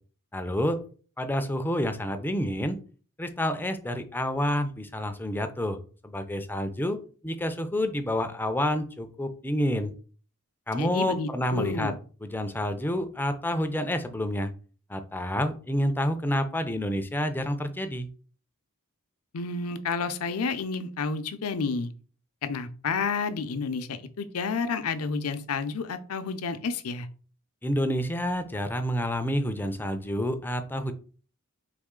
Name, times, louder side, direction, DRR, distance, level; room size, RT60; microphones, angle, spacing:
voice 1, 0.3-0.8 1.2-2.8 3.2-5.8 6.0-7.0 7.2-9.9 10.7-11.9 12.2-14.5 14.9-18.1 27.6-30.9, equal, 10° left, 8 dB, 0.4 m, -28 dB
voice 2, 10.8-12.0 19.3-21.9 22.4-27.1, left 4 dB, 70° left, 10 dB, 0.5 m, -30 dB
4.1 x 3.1 x 3.7 m, 0.40 s
head